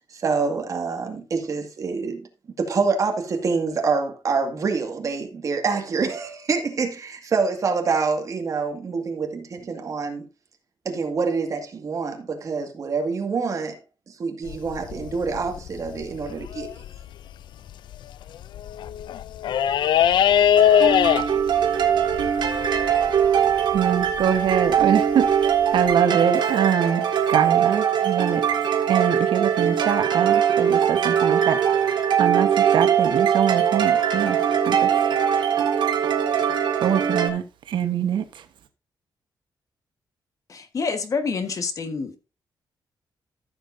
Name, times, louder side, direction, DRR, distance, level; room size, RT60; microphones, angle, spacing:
voice 1, 0.1-2.3 2.6-10.3 10.9-13.8 14.1-16.8, right 4 dB, 45° right, 2.0 m, -26 dB
sound 1, 14.5-17.0 17.7-18.0 18.4-24.9 25.9-26.0, left 10 dB, 75° left, 0.4 m, -22 dB
sound 2, 20.6-37.3, right 8 dB, 70° right, 2.1 m, -21 dB
voice 2, 23.7-31.9 32.2-34.4 34.6-34.9 36.8-38.4, right 8 dB, 90° right, 1.2 m, -24 dB
voice 3, 40.5-42.2, left 4 dB, 45° left, 1.4 m, -27 dB
14.5 x 7.3 x 2.7 m
wide cardioid pair, 165°, 8 cm